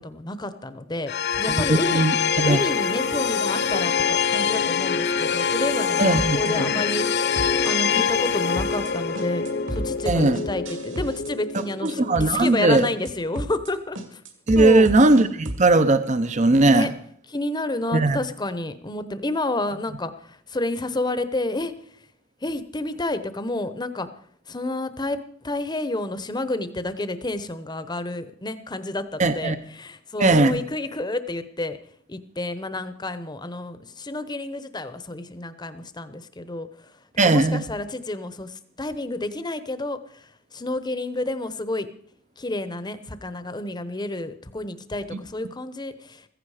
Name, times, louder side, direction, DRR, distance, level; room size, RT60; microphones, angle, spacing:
voice 1, 0.0-2.0 2.5-9.4 9.7-14.2 14.5-14.9 16.7-16.9 17.3-21.7 22.4-24.1 24.5-31.8 32.1-36.7 37.2-41.9 42.4-46.3, left 2 dB, 20° left, 0.9 m, -30 dB
sound 1, 1.1-12.1, left 6 dB, 50° left, 1.0 m, -24 dB
voice 2, 1.5-2.6 6.0-6.7 10.1-10.4 11.8-12.9 14.5-16.9 17.9-18.2 29.2-29.6 30.2-30.6 37.2-37.6, right 2 dB, 35° right, 0.7 m, -19 dB
sound 2, 6.2-6.5 6.8-7.1 7.4-7.7 8.0-8.3 8.6-8.9 9.2-11.3 11.6-11.9 12.2-12.5 12.8-13.1 13.4-13.7 14.0-15.7, right 1 dB, 60° right, 2.2 m, -33 dB
15.5 x 15.0 x 4.9 m
head